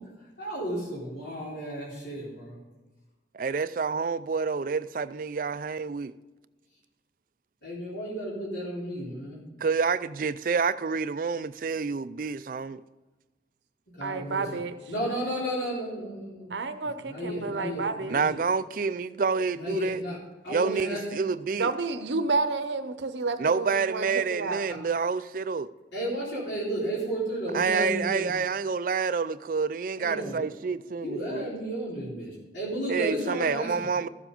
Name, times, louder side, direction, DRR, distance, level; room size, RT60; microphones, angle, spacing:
voice 1, 0.4-2.6 7.6-9.4 13.9-14.4 14.9-16.6 17.0-18.3 19.5-20.2 20.4-21.0 24.7-24.8 25.9-28.3 30.0-30.4 31.0-33.7, right 1 dB, 85° left, 3.8 m, -33 dB
voice 2, 3.3-6.1 9.6-12.8 18.1-20.0 20.5-21.7 23.4-25.7 27.5-31.5 32.9-34.1, right 5 dB, 50° right, 0.4 m, -28 dB
voice 3, 14.0-14.7 16.5-18.2 21.5-24.6, right 3 dB, 80° right, 0.8 m, -30 dB
14.0 x 7.4 x 5.2 m
head